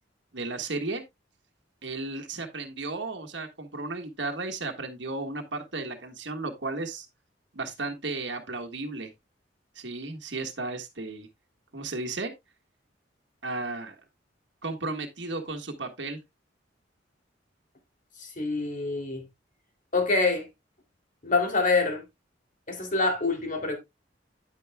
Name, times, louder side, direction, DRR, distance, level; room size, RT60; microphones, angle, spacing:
voice 1, 0.3-1.0 1.8-7.1 7.5-9.1 9.7-11.3 11.7-12.3 13.4-14.0 14.6-16.2, right 3 dB, 70° right, 1.5 m, -34 dB
voice 2, 18.4-19.2 19.9-20.5 21.2-22.0 22.7-23.8, left 3 dB, 45° left, 2.7 m, -25 dB
9.6 x 9.3 x 2.2 m
head